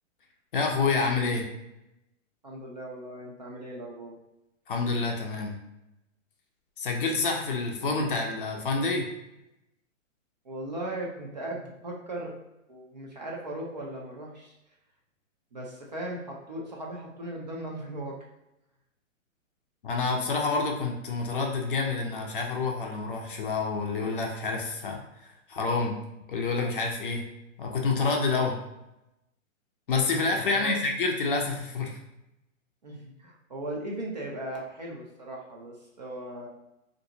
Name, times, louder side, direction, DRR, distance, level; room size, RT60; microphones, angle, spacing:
voice 1, 0.5-1.4 4.7-5.5 6.8-9.1 19.8-25.0 25.5-25.9 26.3-27.2 27.6-28.6 29.9-31.9, left 4 dB, 40° left, 1 dB, 0.5 m, -28 dB
voice 2, 2.4-4.2 10.4-12.3 12.7-14.6 15.5-18.1 30.4-30.8 32.8-36.5, right 1 dB, 35° right, -2 dB, 0.4 m, -38 dB
3.6 x 2.5 x 2.7 m, 0.92 s
hypercardioid pair, 165°, 40 cm